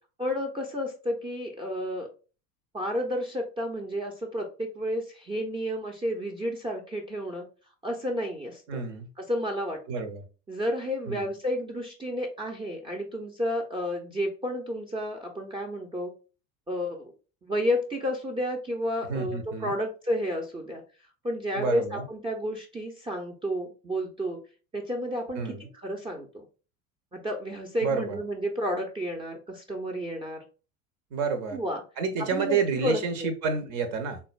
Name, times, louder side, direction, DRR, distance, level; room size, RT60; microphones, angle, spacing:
voice 1, 0.2-2.1 2.7-7.5 7.8-8.8 9.2-9.8 10.5-16.1 16.7-17.1 17.4-20.8 21.2-24.4 24.7-26.4 27.1-30.4 31.5-31.8 32.2-33.3, equal, 15° right, 0.5 m, -31 dB
voice 2, 8.7-9.1 9.9-10.2 11.1-11.3 19.1-19.7 21.5-22.1 25.4-25.7 27.8-28.2 31.1-31.6 32.0-34.2, right 5 dB, 55° right, 0.7 m, -29 dB
3.6 x 2.2 x 2.3 m
figure-of-eight pair, 70°, 40 cm